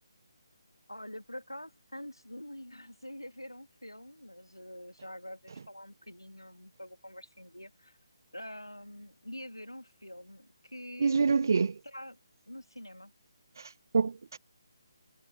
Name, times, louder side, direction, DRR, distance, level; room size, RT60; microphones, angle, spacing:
voice 1, 0.9-8.0 8.3-11.5 11.8-12.2 12.5-13.1, left 1 dB, 90° left, 2.0 m, -45 dB
voice 2, 11.0-11.7 13.6-14.4, right 5 dB, 50° right, 0.5 m, -27 dB
figure-of-eight pair, 150°, 2 cm